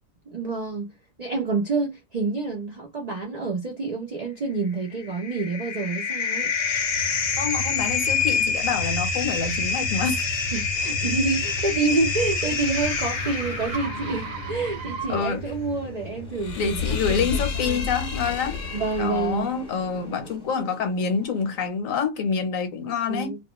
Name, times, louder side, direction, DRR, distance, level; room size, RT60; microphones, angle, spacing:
voice 1, 0.3-0.9 1.2-6.5 10.5-17.9 18.7-19.5 23.1-23.4, right 3 dB, 60° right, 0.4 m, -28 dB
sound 1, 4.8-19.4, left 5 dB, 55° left, 0.7 m, -28 dB
voice 2, 7.4-10.3 15.1-15.4 16.6-18.6 19.0-23.4, left 6 dB, 70° left, 1.1 m, -27 dB
sound 2, 11.0-15.5, right 6 dB, 75° right, 1.0 m, -38 dB
sound 3, 15.1-21.7, right 2 dB, 35° right, 1.1 m, -46 dB
2.5 x 2.1 x 2.9 m
omnidirectional pair, 1.5 m